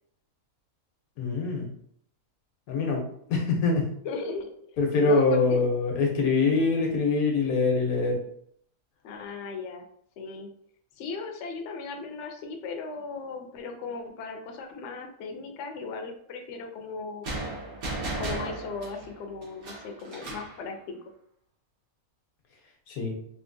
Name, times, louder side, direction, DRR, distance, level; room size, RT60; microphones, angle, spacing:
voice 1, 1.2-1.7 2.7-3.0 3.3-3.9 4.8-8.2 22.9-23.2, left 3 dB, 90° left, 0 dB, 1.3 m, -24 dB
voice 2, 4.0-4.5 5.0-5.6 9.0-9.8 10.2-10.5 11.0-17.3 18.2-21.0, left 4 dB, 65° left, 4 dB, 0.8 m, -37 dB
sound 1, 17.2-20.6, right 2 dB, 85° right, 1.5 m, -35 dB
3.5 x 2.5 x 2.6 m, 0.66 s
omnidirectional pair, 1.5 m